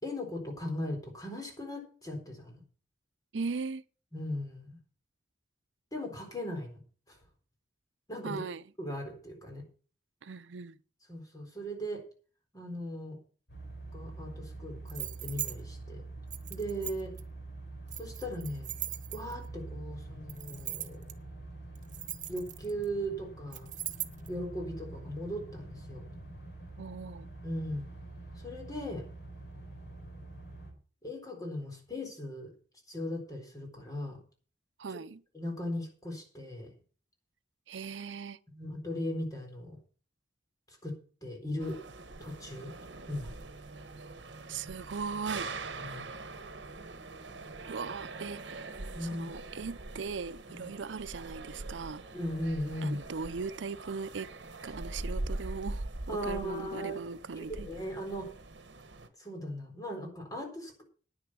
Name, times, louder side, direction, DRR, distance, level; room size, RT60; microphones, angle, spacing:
voice 1, 0.0-2.6 4.1-4.8 5.9-6.8 7.1-7.2 8.1-8.4 8.8-9.6 11.1-12.0 12.5-13.2 13.9-16.0 16.5-17.1 18.0-18.7 19.1-21.0 22.3-23.7 24.3-26.0 27.4-27.8 28.4-29.1 31.0-32.5 32.9-34.2 34.9-35.0 35.3-36.7 38.5-39.8 40.7-41.8 42.2-42.7 43.1-43.3 45.8-46.1 48.9-49.3 50.5-50.7 52.1-53.0 54.7-54.8 56.1-57.0 57.4-58.3 59.2-60.8, equal, 20° left, 4.0 m, -38 dB
voice 2, 3.3-3.8 8.2-8.6 10.2-10.8 26.8-27.3 34.8-35.2 37.7-38.4 44.5-45.5 47.7-48.7 49.1-52.0 52.8-54.3 54.6-57.7, right 5 dB, 85° right, 0.6 m, -39 dB
sound 1, 13.5-30.7, right 2 dB, 65° left, 4.5 m, -46 dB
sound 2, 14.9-15.5 16.3-17.2 17.9-19.5 20.3-21.1 21.8-22.8 23.5-24.3, right 13 dB, 45° right, 0.9 m, -39 dB
sound 3, 41.6-59.1, right 2 dB, 70° right, 1.3 m, -43 dB
10.0 x 9.7 x 6.1 m
head